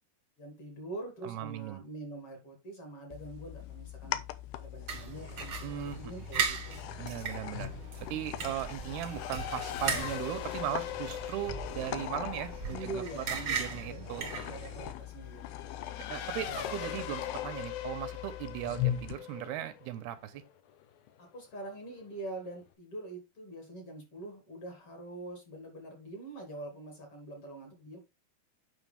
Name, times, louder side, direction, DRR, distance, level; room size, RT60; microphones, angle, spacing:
voice 1, 0.4-4.2 4.6-6.9 12.7-14.0 14.3-16.0 16.4-16.7 21.2-28.0, right 2 dB, 40° left, 2.8 m, -44 dB
voice 2, 1.2-1.8 5.6-6.1 7.0-7.7 8.1-14.3 16.1-20.4, right 12 dB, 80° right, 2.6 m, -38 dB
sound 1, 3.1-19.2, left 13 dB, 90° left, 2.7 m, -41 dB
sound 2, 4.9-14.9, right 6 dB, 65° right, 1.1 m, -38 dB
Race car auto racing / Accelerating revving vroom, 7.0-21.1, left 10 dB, 70° left, 2.6 m, -42 dB
9.1 x 5.8 x 3.4 m
omnidirectional pair, 4.7 m